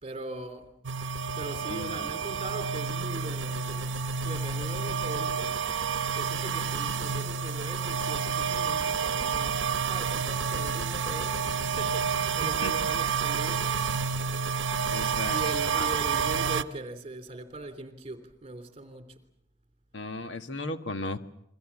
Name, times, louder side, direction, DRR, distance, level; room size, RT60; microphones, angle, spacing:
voice 1, 0.0-0.7 1.3-3.9 4.2-5.6 6.1-13.7 15.3-19.2, right 2 dB, 35° right, 3.3 m, -40 dB
sound 1, 0.8-16.6, right 6 dB, 75° right, 1.0 m, -29 dB
voice 2, 1.7-2.0 12.4-12.7 14.9-15.9 19.9-21.2, left 2 dB, 75° left, 1.6 m, -36 dB
Female speech woman speaking, 3.1-5.2 6.1-9.0 9.9-11.8, left 1 dB, 30° left, 5.5 m, -52 dB
28.5 x 22.5 x 7.3 m
head